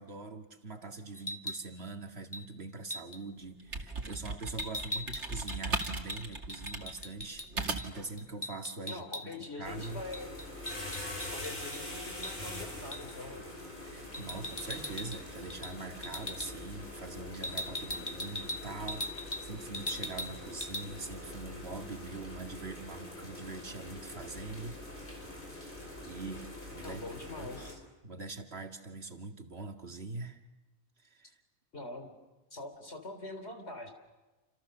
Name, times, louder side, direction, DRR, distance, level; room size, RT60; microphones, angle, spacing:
voice 1, 0.0-10.0 13.8-24.8 26.0-27.0 27.4-27.7 28.0-30.4 31.0-31.4, right 3 dB, 65° right, 4 dB, 2.4 m, -43 dB
sound 1, 1.2-1.6 2.3-2.5 2.9-3.2 4.6-7.5 7.8-7.9 8.2-9.5 9.8-11.8 12.2-12.4 12.9-13.1 14.1-15.2 15.5-15.7 16.0-16.5 17.4-19.5 19.7-20.3 20.6-20.8, left 1 dB, 20° left, 1.3 m, -40 dB
sound 2, 3.4-8.1, right 3 dB, 85° right, 2.7 m, -37 dB
voice 2, 8.9-10.4 11.3-13.4 26.8-27.8 31.7-32.1 32.5-33.9, left 2 dB, 70° left, 6 dB, 4.0 m, -43 dB
sound 3, 9.6-27.7, left 1 dB, 45° left, 5.9 m, -44 dB
29.0 x 27.5 x 6.8 m, 1.1 s
omnidirectional pair, 1.2 m